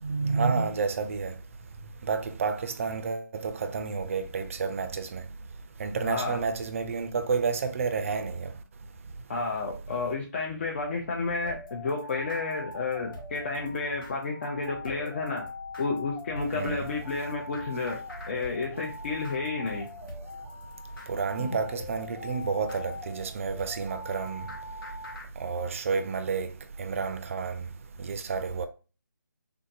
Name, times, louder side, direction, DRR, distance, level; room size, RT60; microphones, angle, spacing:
voice 1, 0.0-1.3 2.0-5.2 5.8-8.5 16.5-16.8 21.1-24.5 25.4-26.5 26.8-27.6 28.0-28.7, right 5 dB, 40° right, 0.4 m, -30 dB
voice 2, 6.0-6.4 9.3-15.5 15.8-18.0 18.3-19.9 21.4-21.5, left 3 dB, 35° left, 0.5 m, -31 dB
sound 1, 11.4-25.3, left 2 dB, 80° left, 1.2 m, -43 dB
3.5 x 2.7 x 2.6 m
figure-of-eight pair, 155°, 11 cm